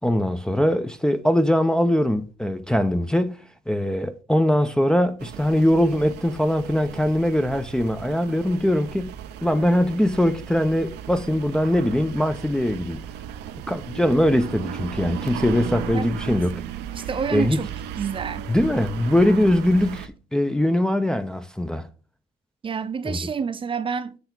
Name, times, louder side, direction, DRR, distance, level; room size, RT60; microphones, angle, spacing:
voice 1, 0.0-13.0 13.7-16.6 17.0-17.6 18.5-21.9 23.0-23.2, left 1 dB, 5° left, 0.5 m, -22 dB
sound 1, 5.2-20.1, right 10 dB, 85° right, 0.6 m, -36 dB
voice 2, 15.9-16.4 16.9-18.5 22.6-24.2, right 6 dB, 30° right, 0.6 m, -29 dB
8.1 x 3.3 x 5.9 m
cardioid pair, 110°, 17 cm